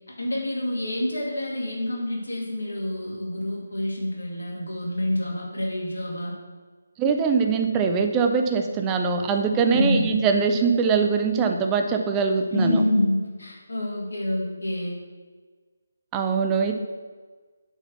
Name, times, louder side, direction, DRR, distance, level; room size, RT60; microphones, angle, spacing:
voice 1, 0.2-6.3 9.7-10.1 12.5-14.9 16.7-16.8, left 1 dB, 75° left, -2 dB, 2.3 m, -27 dB
voice 2, 7.0-12.8 16.1-16.7, right 5 dB, 15° right, 5 dB, 0.6 m, -22 dB
7.0 x 4.1 x 5.8 m, 1.4 s
figure-of-eight pair, 150°, 0 cm